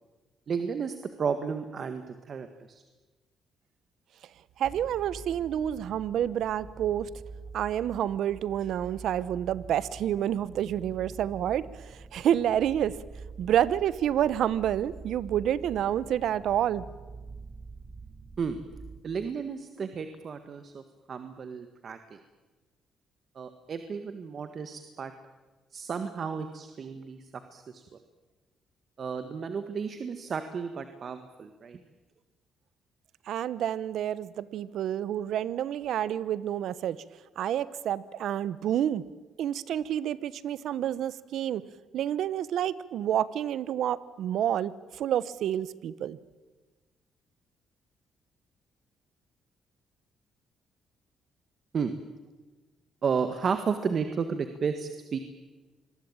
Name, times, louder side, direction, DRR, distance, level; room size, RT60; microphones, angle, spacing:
voice 1, 0.5-2.8 18.4-18.6 19.0-20.8 21.1-22.2 23.3-25.1 25.7-27.2 27.5-27.8 29.0-31.8 51.7-51.9 53.0-55.2, right 6 dB, 50° right, 9 dB, 1.7 m, -33 dB
sound 1, 4.6-19.0, right 4 dB, 25° right, 1.5 m, -46 dB
voice 2, 4.6-7.1 7.5-13.0 13.4-16.9 33.3-37.0 37.4-39.0 39.4-41.6 41.9-46.2, right 10 dB, 75° right, 18 dB, 1.1 m, -29 dB
26.5 x 22.0 x 8.9 m, 1.3 s
cardioid pair, 90°, 0 cm